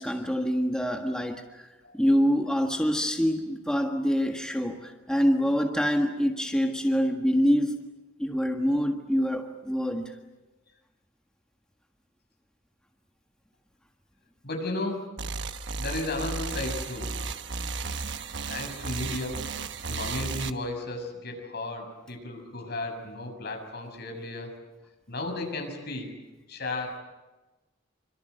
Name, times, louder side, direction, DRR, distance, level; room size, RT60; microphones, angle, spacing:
voice 1, 0.0-1.7 1.9-7.8 8.2-10.2, equal, 5° left, 2 dB, 1.6 m, -25 dB
voice 2, 14.4-15.1 15.8-17.1 18.5-19.4 19.8-24.5 25.1-26.2 26.5-27.0, left 2 dB, 55° left, 3 dB, 6.8 m, -34 dB
sound 1, 15.2-20.5, right 4 dB, 65° right, 1.2 m, -34 dB
27.0 x 25.5 x 8.1 m, 1.1 s
head